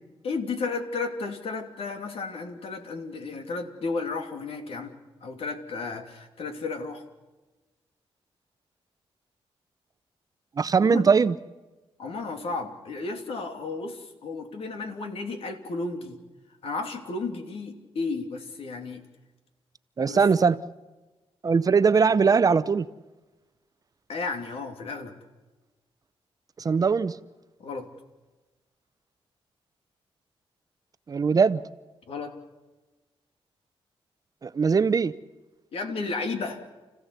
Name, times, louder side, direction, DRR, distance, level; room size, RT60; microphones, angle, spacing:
voice 1, 0.2-4.9 5.2-7.0 10.8-11.0 12.0-16.2 16.6-19.0 20.0-20.2 24.1-25.1 27.6-27.9 32.1-32.4 35.7-36.6, left 3 dB, 70° left, 2.9 m, -33 dB
voice 2, 10.6-11.4 20.0-20.6 21.4-22.9 26.6-27.2 31.1-31.6 34.4-35.1, right 5 dB, 35° right, 0.7 m, -21 dB
30.0 x 15.5 x 8.2 m
cardioid pair, 115°, 10 cm